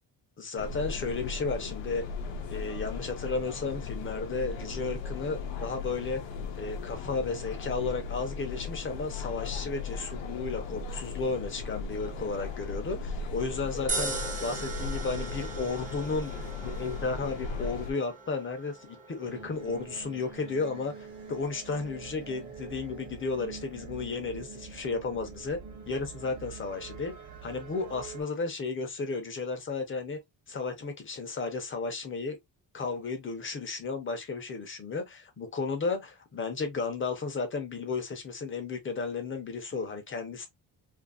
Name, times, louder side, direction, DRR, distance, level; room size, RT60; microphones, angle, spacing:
voice 1, 0.4-2.0 2.5-6.2 6.5-30.2 30.5-32.4 32.7-40.5, left 4 dB, 30° left, 0.7 m, -33 dB
sound 1, 0.6-17.9, left 4 dB, 90° left, 0.7 m, -37 dB
sound 2, 13.9-26.2, right 3 dB, 20° right, 0.5 m, -42 dB
sound 3, 19.2-28.2, right 5 dB, 45° right, 0.9 m, -45 dB
2.7 x 2.6 x 2.4 m
cardioid pair, 155°, 42 cm